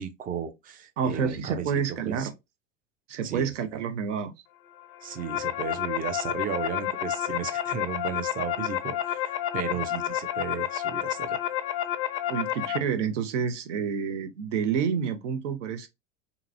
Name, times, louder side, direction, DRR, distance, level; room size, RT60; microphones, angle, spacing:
voice 1, 0.0-2.3 3.2-3.5 5.0-11.4, right 7 dB, 25° right, 0.5 m, -35 dB
voice 2, 1.0-2.3 3.1-4.3 9.7-9.8 12.3-15.9, right 7 dB, 75° right, 0.7 m, -29 dB
sound 1, 4.9-12.8, left 12 dB, 45° left, 0.4 m, -30 dB
2.8 x 2.5 x 2.5 m
hypercardioid pair, 95°, 37 cm